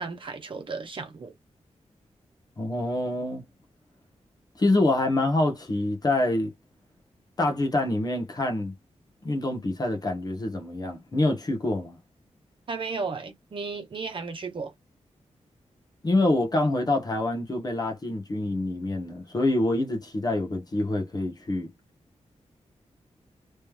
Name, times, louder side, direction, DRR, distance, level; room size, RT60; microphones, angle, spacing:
voice 1, 0.0-1.3 12.7-14.7, right 4 dB, 45° right, 1.0 m, -34 dB
voice 2, 2.6-3.4 4.6-6.5 7.4-8.7 9.2-12.0 16.0-21.7, left 2 dB, 35° left, 1.1 m, -26 dB
3.2 x 3.0 x 3.5 m
wide cardioid pair, 170°, 12 cm